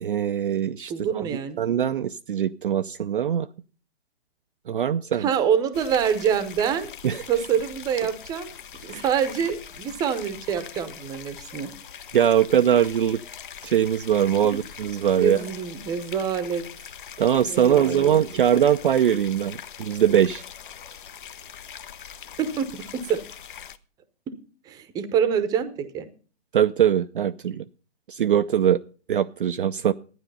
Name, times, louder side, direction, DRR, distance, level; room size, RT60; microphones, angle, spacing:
voice 1, 0.0-1.2 1.6-3.5 4.7-5.3 7.0-7.2 8.9-9.0 12.1-13.2 13.6-15.4 17.2-20.4 26.5-27.7 28.1-28.8 29.1-29.9, right 9 dB, 50° right, 10 dB, 0.5 m, -22 dB
voice 2, 0.9-1.6 5.1-6.9 7.3-11.7 14.5-14.6 15.2-16.7 17.5-18.1 22.4-23.2 24.3-24.4 24.6-26.1, right 8 dB, 10° right, 13 dB, 0.8 m, -26 dB
sound 1, 5.7-23.8, left 8 dB, 50° left, 0.8 m, -42 dB
12.0 x 9.8 x 5.5 m, 0.39 s
figure-of-eight pair, 130°, 34 cm